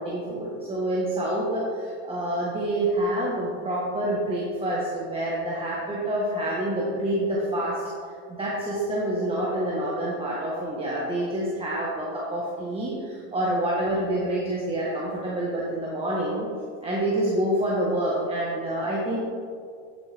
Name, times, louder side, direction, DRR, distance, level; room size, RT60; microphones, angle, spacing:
voice 1, 0.0-7.8 8.4-16.5 16.8-19.2, right 1 dB, 15° right, -5 dB, 1.3 m, -27 dB
9.8 x 7.4 x 3.5 m, 2.3 s
supercardioid pair, 135°, 33 cm